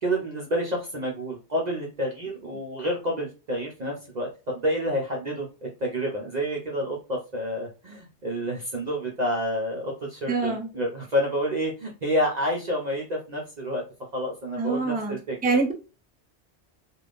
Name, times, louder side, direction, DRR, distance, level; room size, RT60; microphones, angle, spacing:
voice 1, 0.0-13.8 14.1-15.4, equal, 45° right, 0.7 m, -29 dB
voice 2, 10.3-10.7 14.6-15.7, right 4 dB, 15° right, 0.4 m, -25 dB
3.3 x 2.5 x 2.4 m
omnidirectional pair, 1.2 m